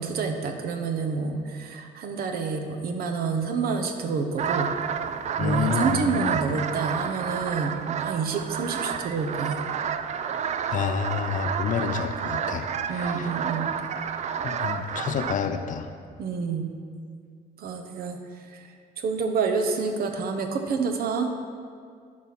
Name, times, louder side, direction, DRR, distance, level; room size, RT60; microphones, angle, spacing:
voice 1, 0.0-4.7 5.4-9.6 12.9-13.8 16.2-16.8 17.6-18.2 18.5-18.7 19.0-21.3, right 5 dB, 60° right, 5 dB, 1.0 m, -28 dB
sound 1, 4.4-15.4, right 7 dB, 45° right, 0.4 m, -30 dB
voice 2, 5.4-6.3 10.7-13.3 14.4-15.9, left 7 dB, 50° left, 8 dB, 0.6 m, -29 dB
11.0 x 4.2 x 6.0 m, 2.1 s
cardioid pair, 110°, 17 cm